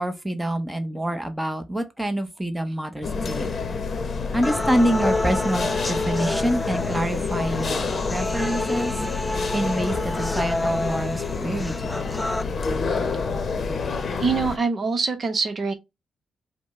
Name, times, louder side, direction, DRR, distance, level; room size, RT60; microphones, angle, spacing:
voice 1, 0.0-3.5 4.3-9.0 9.5-12.0, right 1 dB, 5° right, 0.9 m, -26 dB
sound 1, 3.0-14.6, left 4 dB, 50° left, 0.8 m, -28 dB
sound 2, 4.4-12.4, left 1 dB, 10° left, 0.5 m, -29 dB
voice 2, 14.2-15.7, right 4 dB, 50° right, 0.9 m, -24 dB
5.0 x 2.2 x 3.6 m
cardioid pair, 65°, 0 cm